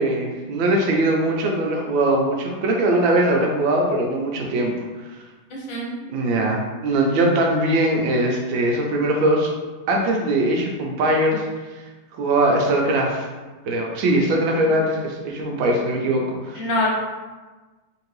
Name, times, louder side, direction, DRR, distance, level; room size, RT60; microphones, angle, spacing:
voice 1, 0.0-4.7 6.1-9.5 9.9-11.5 12.1-13.3 13.7-16.6, right 1 dB, 75° right, 0 dB, 1.3 m, -21 dB
voice 2, 5.5-6.0 14.6-14.7 16.6-16.9, left 2 dB, 75° left, -3 dB, 1.6 m, -25 dB
3.5 x 3.2 x 3.1 m, 1.3 s
omnidirectional pair, 2.2 m